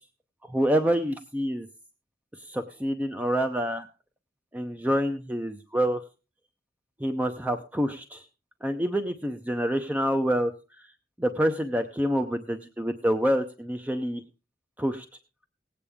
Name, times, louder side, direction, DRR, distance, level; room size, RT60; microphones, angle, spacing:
voice 1, 0.5-1.7 2.4-3.9 4.5-6.0 7.0-8.2 8.6-10.5 11.2-14.2 14.8-15.1, equal, 10° right, 6 dB, 0.6 m, -27 dB
17.5 x 8.5 x 3.6 m, 0.32 s
head